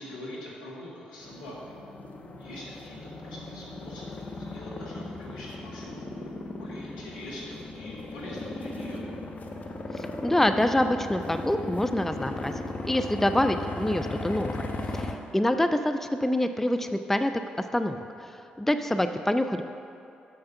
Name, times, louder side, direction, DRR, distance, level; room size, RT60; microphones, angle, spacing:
voice 1, 0.0-1.6 2.4-6.0 6.5-9.1, left 1 dB, 85° left, -5 dB, 1.5 m, -43 dB
sound 1, 1.2-15.2, left 2 dB, 40° left, 0.9 m, -37 dB
voice 2, 10.0-12.5 12.9-14.7 14.9-17.4 17.7-19.6, left 1 dB, 10° left, 8 dB, 0.4 m, -26 dB
6.9 x 6.7 x 5.6 m, 2.7 s
hypercardioid pair, 40°, 4 cm